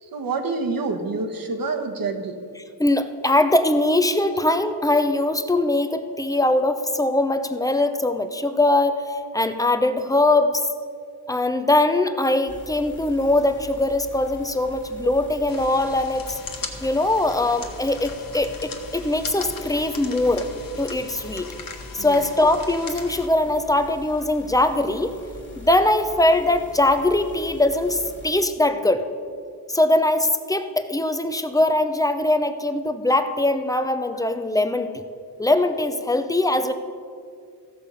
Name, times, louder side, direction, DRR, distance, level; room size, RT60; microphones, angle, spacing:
voice 1, 0.0-2.4 22.0-22.3, right 3 dB, 60° right, 5 dB, 1.3 m, -27 dB
voice 2, 2.8-10.6 11.3-16.4 16.8-20.5 20.8-21.5 21.9-25.2 25.6-29.1 29.7-35.0 35.4-36.7, left 2 dB, 10° left, 8 dB, 0.6 m, -21 dB
sound 1, 12.5-28.3, left 3 dB, 30° left, 1.7 m, -43 dB
sound 2, 15.5-23.3, left 5 dB, 55° left, 1.3 m, -39 dB
15.5 x 6.7 x 5.6 m, 2.3 s
wide cardioid pair, 110°, 39 cm